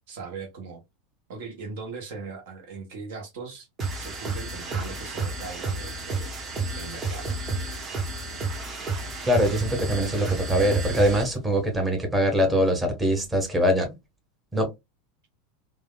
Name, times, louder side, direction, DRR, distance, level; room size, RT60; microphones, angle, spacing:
voice 1, 0.1-0.8 1.3-3.7 4.0-6.4 6.7-7.4, right 4 dB, 65° right, 0.8 m, -39 dB
sound 1, 3.8-11.4, right 3 dB, 35° right, 1.0 m, -31 dB
voice 2, 9.3-13.9 14.5-14.7, equal, 15° right, 1.2 m, -23 dB
3.3 x 2.2 x 2.2 m
hypercardioid pair, 85°, 0 cm